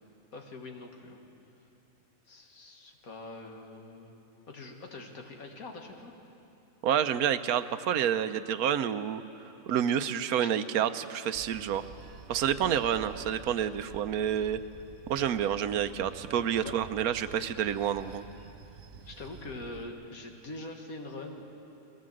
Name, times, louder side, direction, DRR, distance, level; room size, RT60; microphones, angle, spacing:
voice 1, 0.3-1.2 2.3-4.1 4.5-6.1 10.4-10.5 12.6-12.8 16.6-16.8 18.9-21.6, left 2 dB, 75° left, 2 dB, 2.1 m, -43 dB
voice 2, 6.8-9.2 9.7-11.9 12.3-14.6 15.1-18.2, right 9 dB, 90° right, 12 dB, 1.2 m, -29 dB
Bell / Train, 11.3-19.9, right 7 dB, 65° right, 1.0 m, -49 dB
21.5 x 16.5 x 7.8 m, 2.9 s
omnidirectional pair, 1.5 m